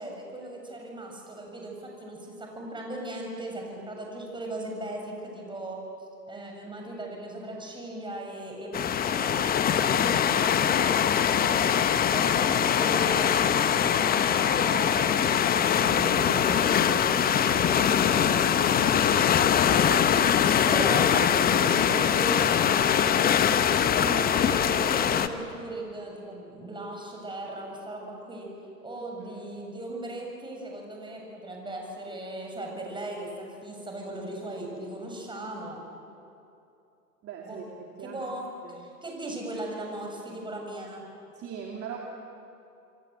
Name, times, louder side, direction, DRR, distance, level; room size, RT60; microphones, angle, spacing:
voice 1, 0.0-5.8 6.3-10.3 10.5-11.8 12.1-15.1 15.6-20.4 20.7-23.4 23.9-28.5 28.8-35.8 37.4-37.6 38.0-38.4 38.7-41.0, right 1 dB, 10° right, 0 dB, 7.3 m, -38 dB
sound 1, 8.7-25.3, left 8 dB, 20° left, 1.0 m, -23 dB
voice 2, 28.9-29.3 37.2-38.3 38.6-38.8 41.3-42.0, right 7 dB, 30° right, -1 dB, 3.1 m, -41 dB
28.0 x 24.0 x 8.2 m, 2.7 s
hypercardioid pair, 105°, 46 cm